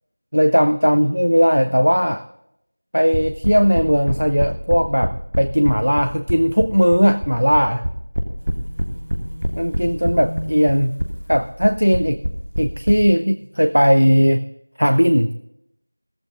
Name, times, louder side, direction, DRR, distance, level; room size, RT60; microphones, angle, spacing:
voice 1, 0.3-2.2 2.9-7.9 9.6-11.0 11.3-12.2 12.6-14.5 14.8-15.3, equal, 85° right, 10 dB, 0.7 m, -17 dB
sound 1, 3.1-12.9, equal, 10° right, 0.4 m, -24 dB
sound 2, 8.4-14.0, equal, 25° left, 1.2 m, -38 dB
14.5 x 14.5 x 3.7 m, 0.79 s
figure-of-eight pair, 180°, 0 cm